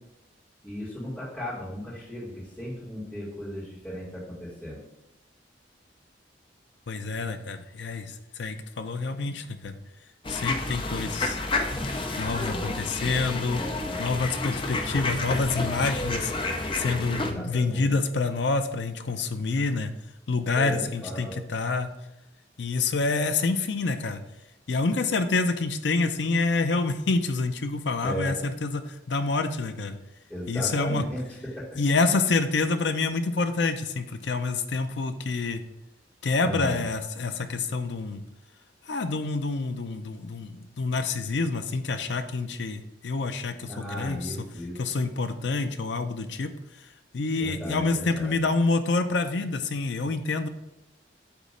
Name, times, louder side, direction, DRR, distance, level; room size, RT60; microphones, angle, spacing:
voice 1, 0.6-4.8 12.5-12.7 13.0-13.2 13.5-14.1 17.1-17.9 20.5-21.4 28.0-28.4 30.3-31.8 36.4-36.8 43.7-44.8 47.4-48.4, equal, 5° left, -10 dB, 1.9 m, -36 dB
voice 2, 6.9-9.8 10.3-11.4 12.2-13.6 14.0-16.3 16.7-19.9 20.3-21.9 22.6-24.2 24.7-30.0 30.5-31.0 31.8-35.6 36.2-38.2 38.9-44.4 44.8-46.5 47.1-50.5, left 3 dB, 70° left, 8 dB, 0.6 m, -27 dB
sound 1, 10.2-17.3, left 2 dB, 30° left, 0.6 m, -30 dB
8.2 x 3.1 x 5.0 m, 0.92 s
head